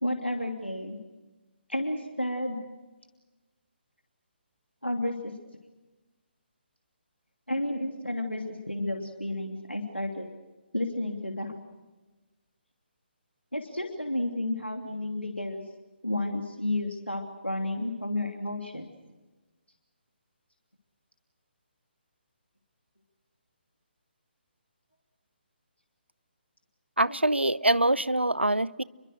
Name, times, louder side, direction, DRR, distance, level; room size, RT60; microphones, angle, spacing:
voice 1, 0.0-1.0 1.7-2.6 4.8-5.3 7.5-10.3 10.7-11.5 13.5-15.6 16.0-18.9 27.1-27.2, left 1 dB, 90° left, 3 dB, 2.9 m, -31 dB
voice 2, 27.0-28.8, right 1 dB, 85° right, 21 dB, 0.7 m, -24 dB
29.0 x 23.0 x 6.5 m, 1.2 s
figure-of-eight pair, 140°, 6 cm